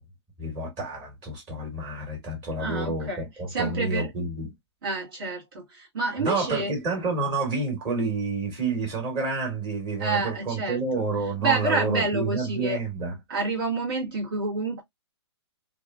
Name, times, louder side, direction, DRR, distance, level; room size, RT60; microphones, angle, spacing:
voice 1, 0.4-4.5 6.2-13.1, right 3 dB, 30° right, 1.7 m, -29 dB
voice 2, 2.6-4.1 4.8-6.7 10.0-10.8 11.4-12.8 13.3-14.8, right 3 dB, 55° right, 1.6 m, -28 dB
2.9 x 2.4 x 2.3 m
hypercardioid pair, 130°, 15 cm